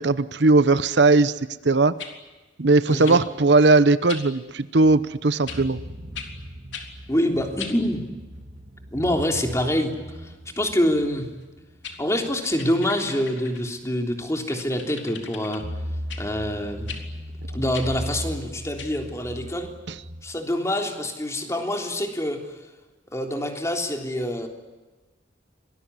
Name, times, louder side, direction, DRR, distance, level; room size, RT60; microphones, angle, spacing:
voice 1, 0.0-1.3 1.6-1.9 2.6-5.8 19.9-20.0, right 3 dB, 65° right, 14 dB, 0.9 m, -18 dB
sound 1, 2.0-2.2 3.0-3.2 4.1-4.3 5.5-5.6 6.1-6.3 6.7-6.9 7.6-7.8 11.4-11.5 11.8-12.0 12.6-13.7 14.5-15.6 16.1-16.2 16.9-17.0 17.7-17.9 18.8-18.9, left 7 dB, 80° left, 3.6 m, -38 dB
voice 2, 2.9-3.2 7.1-8.0 8.9-9.9 10.6-11.3 12.0-15.6 16.2-16.9 17.5-19.7 20.2-22.4 23.1-24.5, left 1 dB, 15° left, 3 dB, 3.4 m, -25 dB
sound 2, 5.1-13.3 13.8-13.9 15.6-20.2, equal, 50° right, 1.8 m, -38 dB
26.0 x 20.5 x 9.7 m, 1.2 s
head